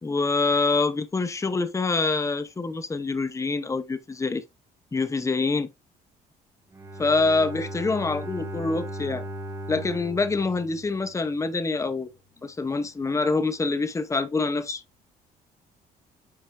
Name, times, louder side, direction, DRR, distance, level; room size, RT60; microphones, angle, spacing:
voice 1, 0.0-4.4 4.9-5.7 7.0-9.2 9.7-12.1 12.4-14.8, left 3 dB, 20° left, 1.1 m, -25 dB
Bowed string instrument, 6.7-11.5, equal, 20° right, 3.2 m, -37 dB
9.8 x 5.6 x 2.8 m
cardioid pair, 110°, 17 cm